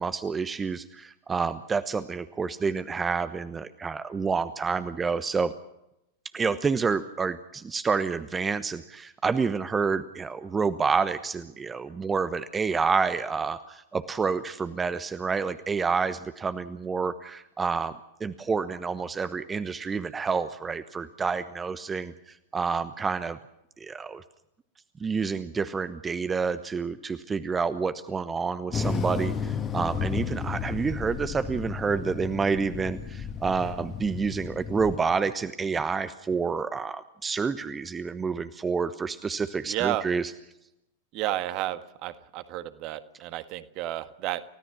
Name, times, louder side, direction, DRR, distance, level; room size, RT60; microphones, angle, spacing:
voice 1, 0.0-5.5 6.3-23.4 23.8-24.2 25.0-40.3, right 5 dB, 15° right, 12 dB, 1.1 m, -28 dB
sound 1, 28.7-35.0, left 5 dB, 25° left, 2.0 m, -33 dB
voice 2, 39.6-40.0 41.1-44.4, right 14 dB, 40° right, 11 dB, 1.6 m, -31 dB
29.5 x 17.0 x 6.1 m, 0.84 s
figure-of-eight pair, 90°, 0 cm